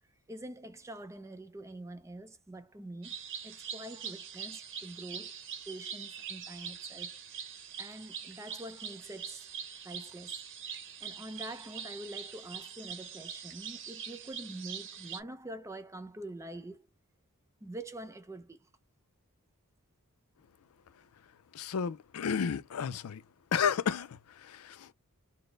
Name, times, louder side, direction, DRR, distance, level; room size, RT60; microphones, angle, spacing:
voice 1, 0.3-3.2 3.4-5.4 5.7-7.5 7.8-9.5 9.8-10.4 11.0-16.9 17.6-18.7, right 1 dB, 15° right, 0.5 m, -45 dB
sound 1, 3.0-15.2, right 7 dB, 60° right, 0.8 m, -43 dB
voice 2, 21.5-23.2 23.5-24.9, left 7 dB, 80° left, 0.4 m, -32 dB
4.3 x 2.0 x 3.2 m
head